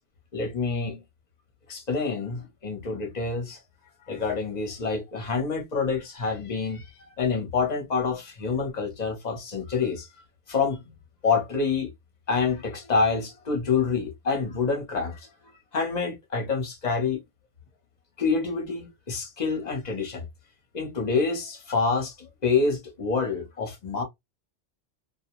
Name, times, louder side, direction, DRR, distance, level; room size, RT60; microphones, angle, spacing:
voice 1, 0.3-1.0 1.7-3.6 4.1-6.9 7.2-10.1 10.5-10.8 11.2-11.9 12.3-15.2 15.7-17.2 18.2-20.3 20.7-24.0, left 4 dB, 40° left, 0.9 m, -27 dB
2.4 x 2.2 x 2.8 m
omnidirectional pair, 1.2 m